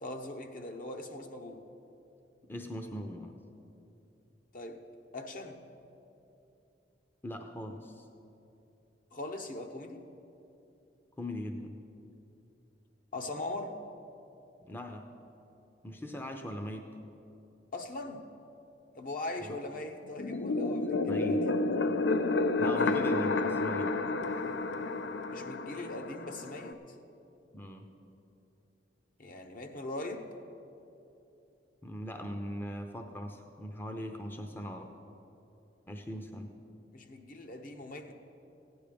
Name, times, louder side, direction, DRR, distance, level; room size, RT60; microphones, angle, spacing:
voice 1, 0.0-1.6 4.5-4.8 5.1-5.6 9.1-10.0 13.1-13.7 17.7-18.2 18.9-21.6 22.8-23.1 25.3-26.8 29.2-30.3 36.9-38.1, left 2 dB, 50° left, 5 dB, 0.9 m, -40 dB
voice 2, 2.5-3.3 7.2-8.1 11.2-11.8 14.6-15.1 15.8-16.9 19.4-19.6 21.1-21.4 22.6-24.3 27.5-27.9 31.8-34.9 35.9-36.5, equal, 10° left, 4 dB, 0.6 m, -40 dB
sound 1, 20.2-26.7, left 3 dB, 75° left, 0.5 m, -30 dB
15.5 x 10.0 x 5.1 m, 2.8 s
head